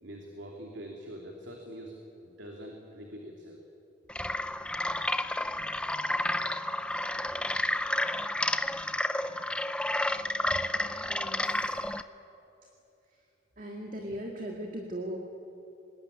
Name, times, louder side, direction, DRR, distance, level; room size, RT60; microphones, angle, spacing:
voice 1, 0.0-2.0 2.2-3.6, equal, 75° right, 1 dB, 3.0 m, -44 dB
sound 1, 4.1-12.0, left 1 dB, 5° left, 0.6 m, -31 dB
voice 2, 11.1-11.8 13.6-15.2, right 1 dB, 45° right, 1 dB, 2.3 m, -38 dB
25.5 x 20.5 x 9.8 m, 2.9 s
head